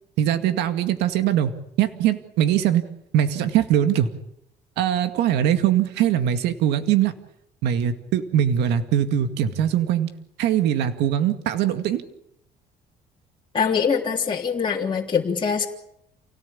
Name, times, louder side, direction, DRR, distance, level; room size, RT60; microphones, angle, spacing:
voice 1, 0.2-1.5 1.8-2.8 3.1-4.1 4.8-7.1 7.6-10.1 10.4-12.0, right 10 dB, 85° right, 9 dB, 2.1 m, -21 dB
voice 2, 13.5-15.7, left 6 dB, 30° left, -2 dB, 3.4 m, -23 dB
29.0 x 18.0 x 8.6 m, 0.77 s
cardioid pair, 110°, 17 cm